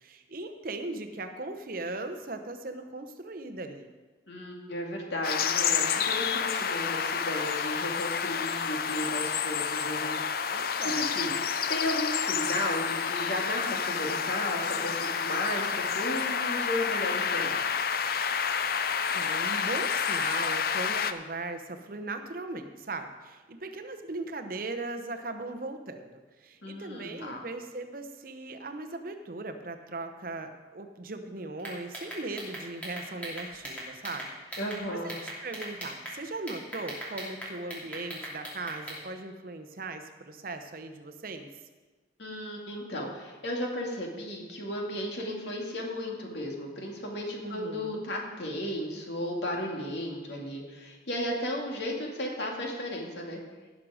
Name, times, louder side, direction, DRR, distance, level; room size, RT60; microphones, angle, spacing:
voice 1, 0.0-3.9 10.5-11.1 19.1-26.1 26.4-34.3 34.9-41.5 47.4-48.0, right 2 dB, 50° right, 7 dB, 0.9 m, -38 dB
voice 2, 4.3-17.7 26.6-27.4 34.6-35.1 42.2-53.4, left 1 dB, 70° left, 0 dB, 2.3 m, -34 dB
sound 1, 5.2-21.1, left 6 dB, 55° left, 0.5 m, -29 dB
sound 2, 31.6-34.8 35.1-36.2 36.5-39.0, equal, 10° left, 2.7 m, -39 dB
17.5 x 6.3 x 5.0 m, 1.3 s
head